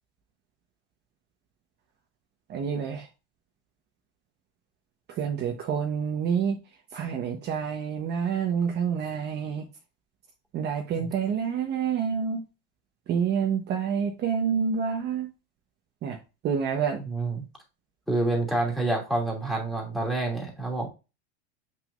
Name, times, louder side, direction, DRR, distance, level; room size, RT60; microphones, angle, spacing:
voice 1, 2.5-3.1 5.1-6.6 6.9-9.6 10.5-12.4 13.1-15.3 16.0-16.2 16.4-17.0, right 7 dB, 35° right, 1.1 m, -28 dB
voice 2, 17.0-17.4 18.1-20.9, right 2 dB, ahead, 2.5 m, -27 dB
7.5 x 6.2 x 2.5 m
supercardioid pair, 145°, 31 cm